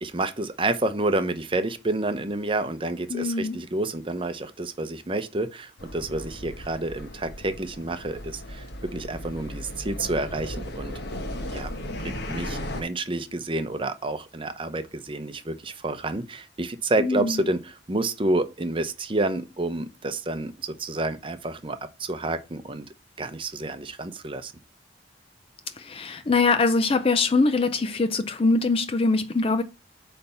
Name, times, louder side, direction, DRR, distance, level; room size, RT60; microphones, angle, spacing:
voice 1, 0.0-8.7 8.9-10.9 11.5-11.7 12.0-22.9 23.2-24.5, right 2 dB, 25° right, 0.7 m, -29 dB
voice 2, 3.1-3.6 17.0-17.5 25.7-29.6, left 3 dB, 30° left, 0.4 m, -23 dB
sound 1, 5.8-12.8, left 1 dB, 55° left, 1.2 m, -36 dB
8.4 x 3.4 x 5.5 m
head